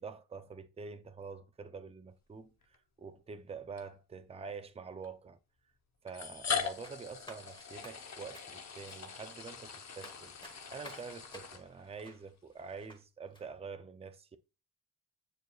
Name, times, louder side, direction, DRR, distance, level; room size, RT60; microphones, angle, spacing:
voice 1, 0.0-5.4 6.0-14.4, right 5 dB, 15° right, 0.4 m, -46 dB
sound 1, 2.6-2.7 3.8-3.9 5.0-5.1 6.1-12.1, left 6 dB, 45° left, 0.8 m, -41 dB
sound 2, 6.8-13.0 13.3-13.4, left 1 dB, 10° left, 1.2 m, -55 dB
9.3 x 4.5 x 2.3 m
wide cardioid pair, 180°, 39 cm